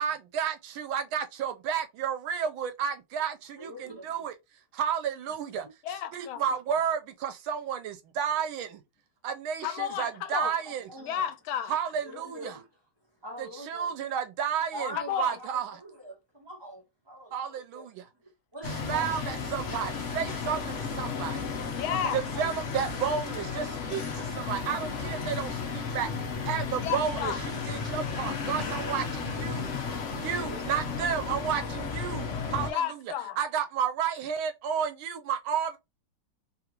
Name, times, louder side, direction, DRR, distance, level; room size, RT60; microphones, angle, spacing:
voice 1, 0.0-4.3 4.7-5.7 6.1-8.8 9.2-10.9 11.7-12.6 13.4-15.8 17.3-18.1 18.6-21.5 22.1-26.1 26.4-32.8 33.4-35.8, right 8 dB, 85° right, 1.5 m, -32 dB
voice 2, 3.6-4.1 10.9-11.2 12.0-12.6 13.2-13.9 14.7-15.5 15.8-17.8 18.5-19.1 19.4-19.5 21.9-22.6 30.3-30.8, right 1 dB, 15° right, 1.1 m, -42 dB
voice 3, 5.8-6.4 9.6-10.5 11.1-11.8 14.9-15.4 21.7-22.2 26.8-27.5 32.7-33.4, left 10 dB, 85° left, 1.4 m, -32 dB
sound 1, 18.6-32.7, left 5 dB, 55° left, 0.8 m, -34 dB
3.4 x 2.4 x 2.9 m
omnidirectional pair, 2.2 m